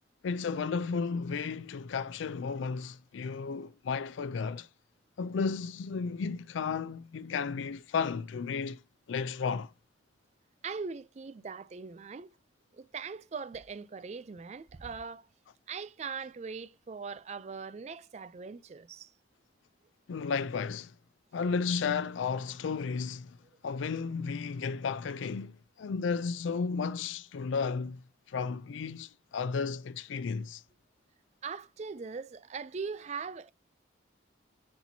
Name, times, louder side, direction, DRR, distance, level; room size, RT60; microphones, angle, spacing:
voice 1, 0.2-4.7 5.2-8.8 9.1-9.7 20.1-20.9 21.3-23.4 23.6-30.6, left 5 dB, 85° left, 0.4 m, -33 dB
voice 2, 10.6-12.3 12.8-15.3 15.7-19.1 31.4-33.5, right 5 dB, 35° right, 0.3 m, -40 dB
10.0 x 4.4 x 2.7 m
head